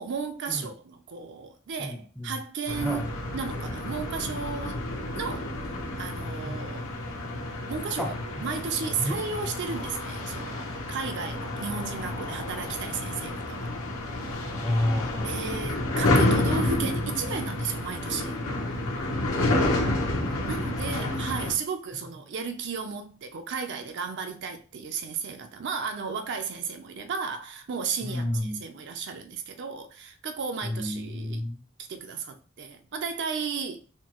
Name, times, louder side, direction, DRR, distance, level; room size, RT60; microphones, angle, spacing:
voice 1, 0.0-3.0 3.3-4.8 5.1-5.5 6.0-6.9 7.7-13.7 15.2-18.4 20.5-28.3 28.6-31.4 31.9-33.8, right 5 dB, 55° right, 0.4 m, -34 dB
voice 2, 1.8-2.4 2.8-3.0 6.4-6.7 8.0-8.1 9.0-9.2 14.6-15.8 19.6-21.1 21.9-22.1 28.0-28.6 30.6-31.6, left 1 dB, ahead, 0.5 m, -32 dB
sound 1, 2.7-21.5, left 1 dB, 70° left, 0.8 m, -30 dB
4.3 x 2.3 x 2.9 m
head